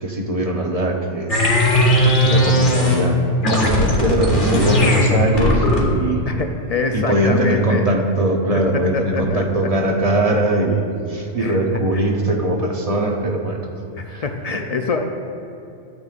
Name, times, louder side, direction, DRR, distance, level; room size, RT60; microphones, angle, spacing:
voice 1, 0.0-1.3 1.9-6.3 6.9-13.7 14.0-14.2 14.5-14.6, right 1 dB, 35° right, 1 dB, 0.7 m, -21 dB
sound 1, 1.3-3.1 3.4-6.0, left 1 dB, 45° left, 1.3 m, -17 dB
voice 2, 6.3-7.8 8.5-9.6 11.4-11.6 14.0-15.0, left 4 dB, 65° left, 4 dB, 0.3 m, -25 dB
12.0 x 9.0 x 2.4 m, 2.7 s
omnidirectional pair, 1.3 m